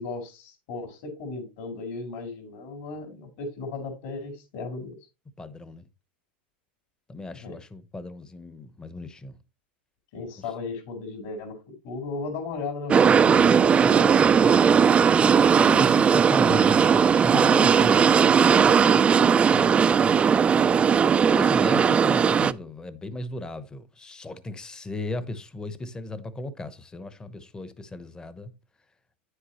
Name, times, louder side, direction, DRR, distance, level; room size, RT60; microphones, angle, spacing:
voice 1, 0.0-5.0 7.4-7.6 10.1-14.8, left 3 dB, 60° left, 4.8 m, -36 dB
voice 2, 5.4-5.9 7.1-9.4 15.1-20.1 21.2-28.5, left 2 dB, 15° left, 0.9 m, -36 dB
sound 1, 12.9-22.5, right 7 dB, 20° right, 0.4 m, -18 dB
9.5 x 8.1 x 3.0 m
supercardioid pair, 125°, 6 cm